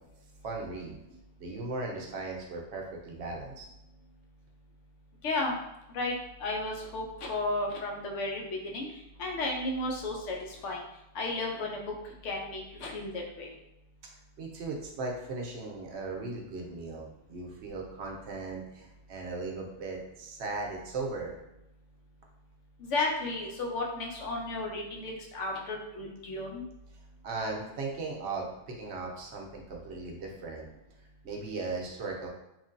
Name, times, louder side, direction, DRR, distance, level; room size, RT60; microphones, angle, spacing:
voice 1, 0.4-1.0 1.4-3.6 14.4-21.3 27.2-30.7 31.2-32.3, right 3 dB, 70° right, 0 dB, 0.8 m, -37 dB
voice 2, 5.2-5.5 5.9-8.9 9.2-10.8 11.1-11.8 12.2-13.5 22.8-26.6, left 2 dB, 85° left, 0 dB, 0.9 m, -33 dB
3.0 x 2.5 x 2.5 m, 0.90 s
omnidirectional pair, 1.3 m